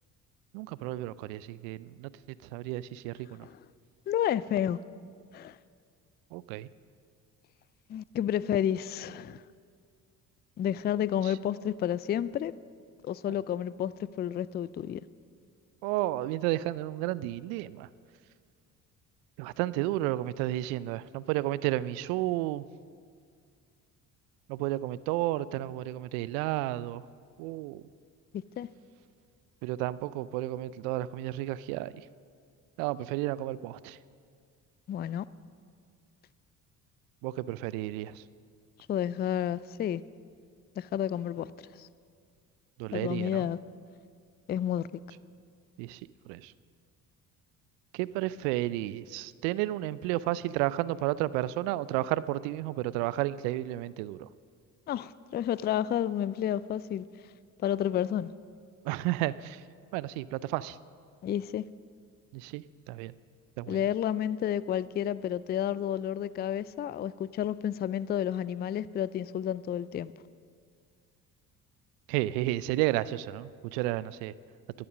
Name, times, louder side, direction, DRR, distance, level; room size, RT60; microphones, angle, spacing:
voice 1, 0.5-2.1 2.5-3.5 6.3-6.7 13.3-13.4 15.8-17.9 19.4-22.6 24.5-27.0 27.4-27.8 29.6-31.9 32.8-34.0 37.2-38.2 42.8-43.5 45.8-46.0 46.3-46.5 47.9-54.3 58.8-59.6 59.9-60.8 62.3-63.1 63.6-63.8 72.1-74.3, right 16 dB, 75° right, 18 dB, 0.5 m, -32 dB
voice 2, 4.1-4.8 5.3-5.6 7.9-9.4 10.6-12.5 13.0-13.9 14.2-15.0 28.6-28.7 34.9-35.2 38.9-40.0 40.8-41.5 41.8-41.9 42.9-43.6 44.5-44.8 54.9-57.0 57.6-58.3 61.2-61.6 63.7-70.1, left 10 dB, 25° left, 18 dB, 0.3 m, -30 dB
14.0 x 10.5 x 6.3 m, 2.2 s
hypercardioid pair, 55°, 43 cm